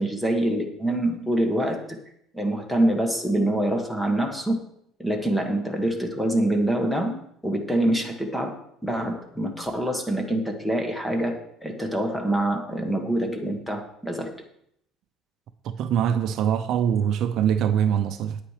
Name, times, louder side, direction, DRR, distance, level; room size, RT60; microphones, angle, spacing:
voice 1, 0.0-2.0 2.3-4.6 5.0-7.2 7.4-14.3, right 1 dB, 5° left, 1.4 m, -25 dB
voice 2, 15.6-18.4, right 9 dB, 55° right, 0.5 m, -23 dB
9.1 x 8.5 x 5.0 m
cardioid pair, 150°, 0 cm